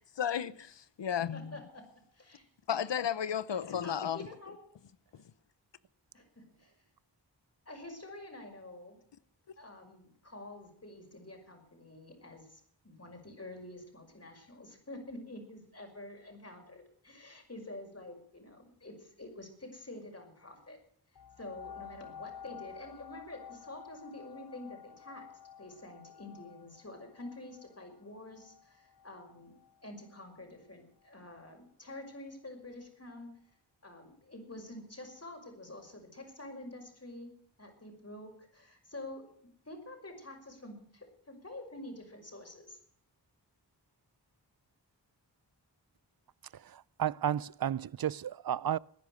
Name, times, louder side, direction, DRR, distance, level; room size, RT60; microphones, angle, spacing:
voice 1, 0.2-1.6 2.7-4.3 5.1-5.2, left 8 dB, 80° left, 0.8 m, -33 dB
voice 2, 1.3-1.8 2.1-2.4 3.6-4.6 7.7-9.0 9.6-20.8 21.4-25.3 25.6-29.5 29.8-33.4 33.8-37.3 37.6-39.3 39.7-42.8, left 1 dB, 35° left, 5.7 m, -48 dB
sound 1, 21.2-30.4 31.0-31.1, left 8 dB, 55° left, 1.0 m, -51 dB
voice 3, 46.5-48.8, right 10 dB, 55° right, 0.5 m, -33 dB
18.5 x 10.5 x 6.5 m
wide cardioid pair, 70°, 43 cm